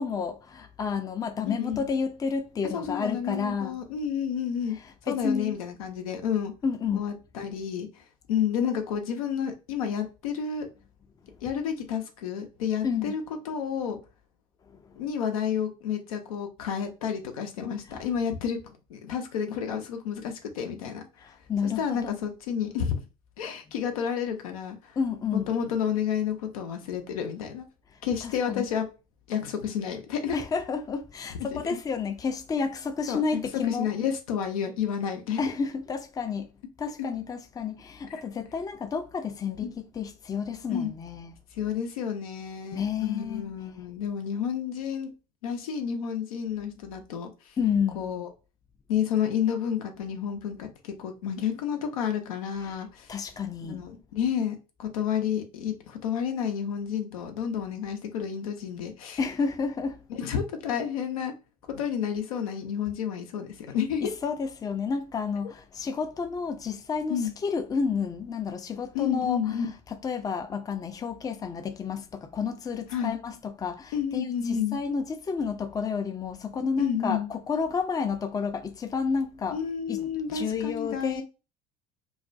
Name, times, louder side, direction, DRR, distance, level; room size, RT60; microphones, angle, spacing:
voice 1, 0.0-3.8 5.1-5.6 6.6-7.0 12.8-13.1 21.2-22.2 25.0-25.5 28.2-28.7 30.3-33.9 35.4-36.5 36.8-41.3 42.7-43.5 47.6-48.0 53.1-53.8 59.2-60.0 64.0-69.6 70.0-79.6 79.9-81.2, left 5 dB, 20° left, 0.4 m, -30 dB
voice 2, 1.5-1.8 2.7-4.8 5.1-6.5 6.9-7.9 8.3-10.7 11.4-14.0 15.0-18.6 18.9-21.0 21.6-23.0 23.4-25.0 25.3-27.6 28.0-28.9 29.3-30.4 31.5-31.8 33.1-33.2 33.7-35.5 37.0-37.1 38.1-38.2 39.6-39.7 40.7-40.9 41.6-45.1 45.4-47.6 47.9-48.3 48.9-53.1 53.6-59.2 60.1-61.3 61.7-64.1 67.1-67.3 68.9-69.7 72.9-73.2 73.9-74.8 76.8-77.3 79.5-81.2, left 8 dB, 85° left, 0.5 m, -30 dB
2.3 x 2.1 x 2.5 m
hypercardioid pair, 70°, 18 cm